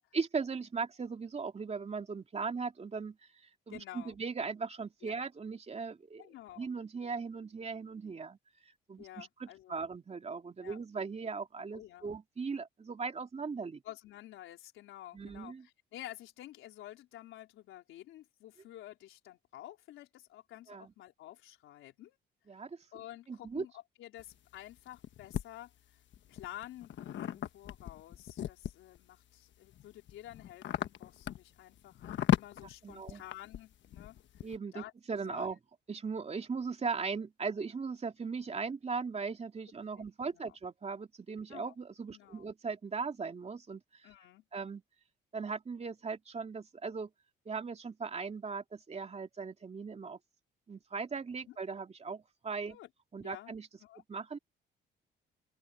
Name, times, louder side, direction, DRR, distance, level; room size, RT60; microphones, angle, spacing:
voice 1, 0.0-8.4 8.6-13.8 15.1-15.7 20.7-20.9 22.5-22.8 23.3-23.6 32.8-33.2 34.4-35.6 35.9-44.1 44.5-44.8 45.3-47.1 47.4-50.2 50.7-52.8 53.1-53.7 54.1-54.4, right 5 dB, 35° right, 2.8 m, -38 dB
voice 2, 3.7-4.2 5.0-5.1 6.2-6.7 9.0-9.9 10.6-10.8 11.7-12.1 13.8-22.2 22.9-25.7 26.3-32.0 32.3-34.2 34.7-34.9 35.3-35.5 40.0-40.5 41.5-41.7 42.1-42.5 44.0-44.4 51.5-51.6 52.7-52.9 53.2-53.5 53.8-54.0, left 13 dB, 90° left, 4.3 m, -50 dB
sound 1, 24.2-25.4 26.1-29.0 29.5-34.6, left 11 dB, 70° left, 1.2 m, -36 dB
open air
cardioid pair, 90°, 20 cm